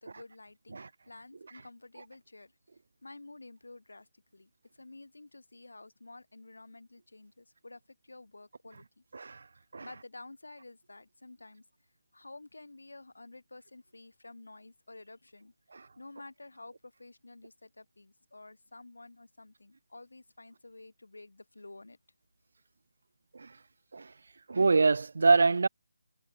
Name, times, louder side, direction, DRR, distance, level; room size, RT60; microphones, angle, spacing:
voice 1, 0.0-2.5 3.0-9.0 9.8-11.7 12.1-15.5 16.0-22.0, left 2 dB, 65° left, 3.6 m, -51 dB
voice 2, 9.1-9.4 9.7-9.9 15.7-15.9 23.3-23.6 23.9-24.1 24.5-25.7, right 4 dB, 50° right, 0.8 m, -25 dB
figure-of-eight pair, 150°, 0 cm